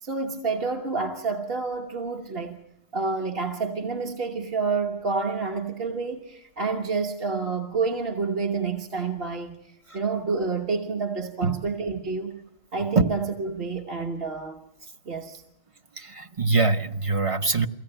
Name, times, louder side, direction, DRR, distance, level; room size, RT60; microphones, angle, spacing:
voice 1, 0.0-2.6 2.9-12.3 12.7-14.6 15.0-15.4, right 4 dB, 50° right, 1.6 m, -29 dB
voice 2, 16.0-17.7, right 3 dB, 30° right, 0.8 m, -23 dB
23.5 x 16.5 x 8.9 m
omnidirectional pair, 1.3 m